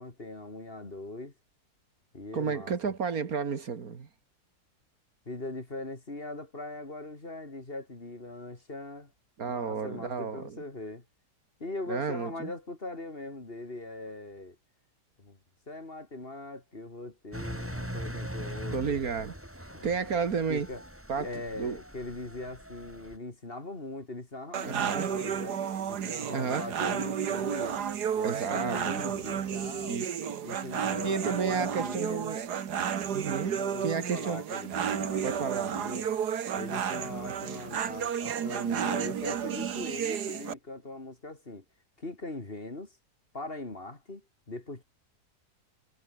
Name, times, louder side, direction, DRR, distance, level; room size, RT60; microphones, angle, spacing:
voice 1, 0.0-1.3 2.1-2.7 5.2-9.1 9.4-11.0 11.6-14.6 15.2-15.4 15.7-19.0 19.7-20.2 20.5-20.8 21.2-25.6 25.9-27.8 28.2-30.0 30.4-32.3 33.4-36.1 36.6-41.6 42.0-43.0 43.3-44.8, left 2 dB, 35° left, 3.1 m, -40 dB
voice 2, 2.3-4.1 9.4-10.6 11.9-12.5 18.7-19.3 19.8-20.7 21.1-21.3 21.6-21.8 24.6-25.1 26.3-26.7 28.2-29.1 29.9-30.6 31.0-32.4 33.1-34.4 35.2-35.8, right 5 dB, 65° right, 2.2 m, -32 dB
Engine, 17.3-23.2, equal, 10° right, 5.3 m, -41 dB
sound 1, 24.5-40.5, right 8 dB, 80° right, 1.9 m, -32 dB
omnidirectional pair, 1.7 m